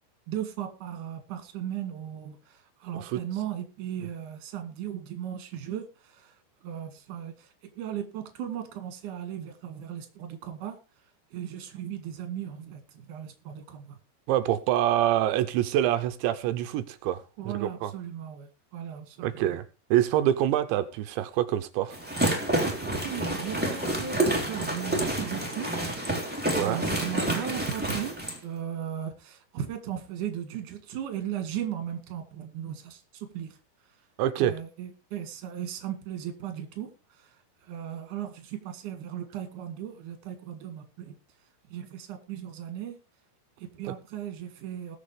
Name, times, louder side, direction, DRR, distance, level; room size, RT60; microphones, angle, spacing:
voice 1, 0.3-6.4 6.6-7.5 7.8-10.7 11.3-12.8 13.1-14.0 17.4-19.6 20.1-20.3 23.0-25.7 26.6-28.1 28.4-33.6 34.4-36.9 37.6-41.1 41.7-43.0 43.6-45.0, right 10 dB, 55° right, 3.2 m, -37 dB
voice 2, 14.3-17.9 19.2-19.6 19.9-22.0 26.6-26.8 34.2-34.6, right 12 dB, 85° right, 3.0 m, -26 dB
sound 1, 21.9-28.4, right 1 dB, 5° right, 2.3 m, -29 dB
20.5 x 7.2 x 3.3 m
omnidirectional pair, 5.2 m